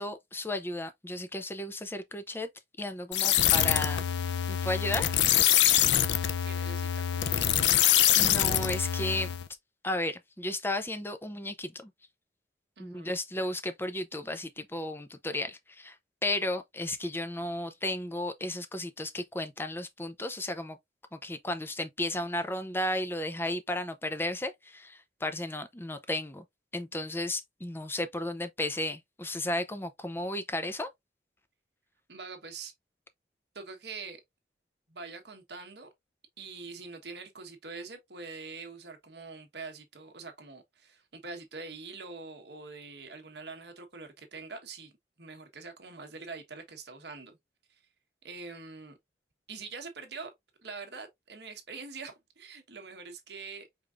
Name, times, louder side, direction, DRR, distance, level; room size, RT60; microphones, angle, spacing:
voice 1, 0.0-2.5 2.8-4.0 4.5-5.1 8.2-9.3 9.8-11.9 12.8-16.0 16.2-20.8 21.1-26.4 26.7-30.9, left 1 dB, 15° left, 0.6 m, -34 dB
sound 1, 3.1-9.5, left 11 dB, 80° left, 0.5 m, -25 dB
voice 2, 6.4-7.5 12.8-13.2 32.1-32.7 33.5-34.2 34.9-35.9 36.4-47.4 48.2-49.0 49.5-50.3 50.6-53.7, right 4 dB, 65° right, 1.3 m, -44 dB
5.0 x 3.6 x 2.5 m
head